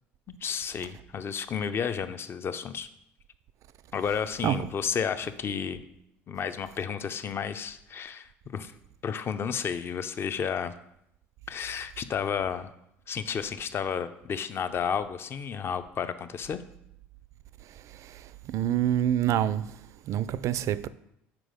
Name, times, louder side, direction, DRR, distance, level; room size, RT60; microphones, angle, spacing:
voice 1, 0.3-2.9 3.9-5.8 6.3-8.7 9.0-10.7 11.5-12.7 13.1-16.6, left 7 dB, 40° left, 0.6 m, -32 dB
voice 2, 18.5-19.7 20.1-20.9, right 11 dB, 55° right, 0.4 m, -26 dB
6.1 x 4.7 x 5.1 m
supercardioid pair, 80°, 6 cm